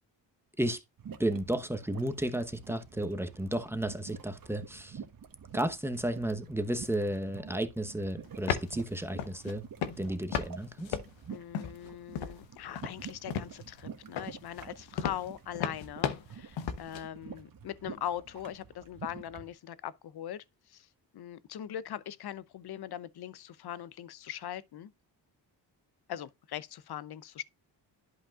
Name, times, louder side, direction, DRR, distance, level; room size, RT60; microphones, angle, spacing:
sound 1, 1.0-19.5, right 7 dB, 45° right, 1.2 m, -48 dB
voice 1, 1.2-5.0 5.5-9.6 10.0-11.0, right 1 dB, 5° right, 1.0 m, -33 dB
sound 2, 8.2-8.8 9.2-9.5 9.8-10.5 10.8-11.9 12.2-12.5 12.7-13.8 14.2-17.0, left 8 dB, 85° left, 1.0 m, -34 dB
voice 2, 11.3-20.4 20.7-20.9 21.1-24.9 26.1-27.4, left 11 dB, 60° left, 0.7 m, -41 dB
11.5 x 5.2 x 2.4 m
cardioid pair, 70°, 45 cm